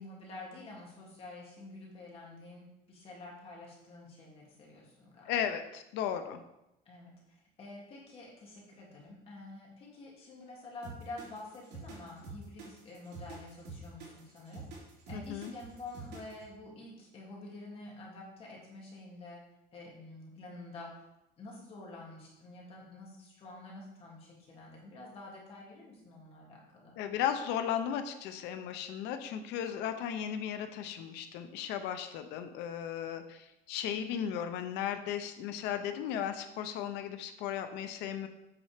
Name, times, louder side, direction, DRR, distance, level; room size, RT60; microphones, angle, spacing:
voice 1, 0.0-5.3 6.9-14.7 15.1-19.4 19.7-20.9 21.4-26.9, left 2 dB, 35° left, -3 dB, 2.2 m, -48 dB
voice 2, 5.3-6.4 15.1-15.5 27.0-38.3, left 9 dB, 85° left, 8 dB, 0.8 m, -35 dB
sound 1, 10.8-16.5, right 4 dB, 70° right, 2.9 m, -47 dB
8.7 x 4.3 x 5.0 m, 0.90 s
cardioid pair, 175°, 17 cm